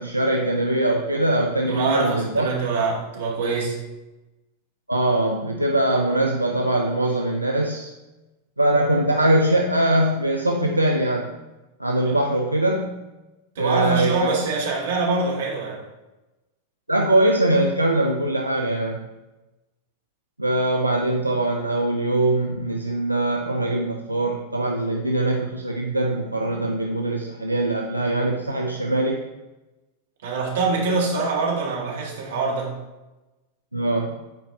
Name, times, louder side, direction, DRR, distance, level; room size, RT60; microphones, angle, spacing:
voice 1, 0.0-2.5 4.9-7.9 8.6-11.4 11.8-13.0 13.6-14.2 16.9-19.0 20.4-29.2 33.7-34.2, right 1 dB, 85° right, 1 dB, 0.5 m, -22 dB
voice 2, 1.7-3.8 12.1-12.2 13.6-15.8 30.2-32.8, right 4 dB, 60° right, -3 dB, 1.8 m, -24 dB
8.1 x 4.5 x 4.0 m, 1.1 s
figure-of-eight pair, 90°, 0 cm